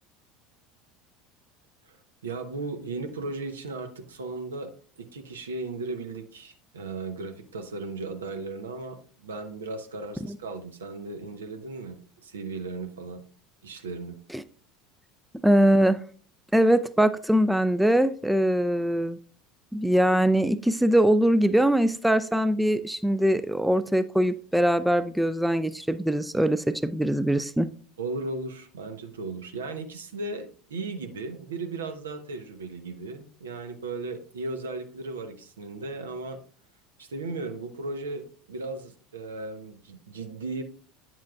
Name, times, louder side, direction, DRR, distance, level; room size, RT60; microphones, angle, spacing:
voice 1, 2.2-4.7 5.0-13.2 13.6-14.2 28.0-36.4 37.0-40.6, right 3 dB, 75° right, 8 dB, 0.8 m, -36 dB
voice 2, 15.4-16.0 16.5-19.2 19.7-27.7, right 1 dB, 5° right, 13 dB, 0.4 m, -22 dB
9.3 x 7.3 x 2.4 m, 0.43 s
figure-of-eight pair, 70°, 0 cm